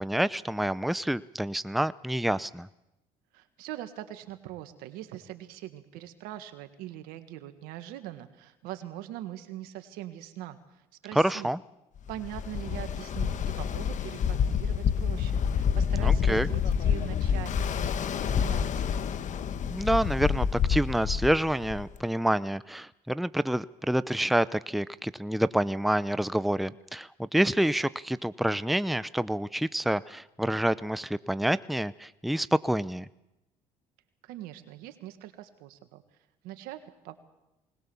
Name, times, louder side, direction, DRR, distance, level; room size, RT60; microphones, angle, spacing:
voice 1, 0.0-2.7 11.1-11.6 16.0-16.5 19.7-33.1, right 1 dB, ahead, 16 dB, 0.7 m, -28 dB
voice 2, 3.3-11.5 12.1-17.6 17.8-19.0 34.2-36.0 36.4-37.2, right 13 dB, 85° right, 9 dB, 1.8 m, -42 dB
Ocean, 12.1-22.0, left 7 dB, 55° left, 1.3 m, -28 dB
20.5 x 19.5 x 7.1 m, 0.94 s
supercardioid pair, 75°, 15 cm